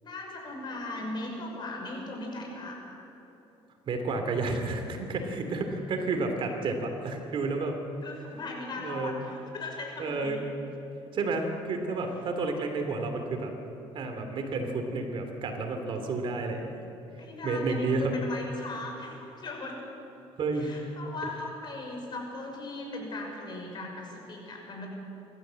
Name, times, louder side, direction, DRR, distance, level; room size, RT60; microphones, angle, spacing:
voice 1, 0.0-3.0 5.9-6.3 8.0-10.4 14.5-14.8 17.2-19.8 20.5-24.9, left 2 dB, 45° left, 1 dB, 5.7 m, -38 dB
voice 2, 3.9-7.8 8.8-9.2 10.0-10.4 11.1-13.5 13.9-16.8 17.4-18.1 20.4-20.7, right 3 dB, 55° right, 5 dB, 3.0 m, -31 dB
26.5 x 13.5 x 7.7 m, 3.0 s
cardioid pair, 105°, 11 cm